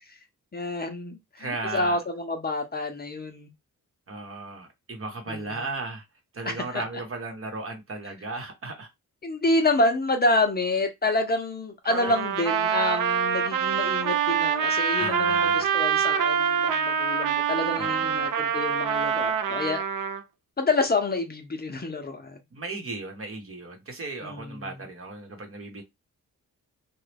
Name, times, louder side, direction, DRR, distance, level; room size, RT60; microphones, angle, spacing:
voice 1, 0.5-3.5 5.3-5.6 6.5-6.8 9.2-19.8 20.6-22.4 24.2-24.7, left 2 dB, 30° left, 0.6 m, -28 dB
voice 2, 1.4-2.0 4.1-6.0 6.3-8.9 14.9-15.7 17.8-18.2 19.0-19.1 22.5-25.8, right 3 dB, 45° right, 1.0 m, -35 dB
Trumpet, 11.9-20.2, right 7 dB, 75° right, 0.5 m, -25 dB
3.0 x 2.3 x 3.3 m
wide cardioid pair, 120°, 32 cm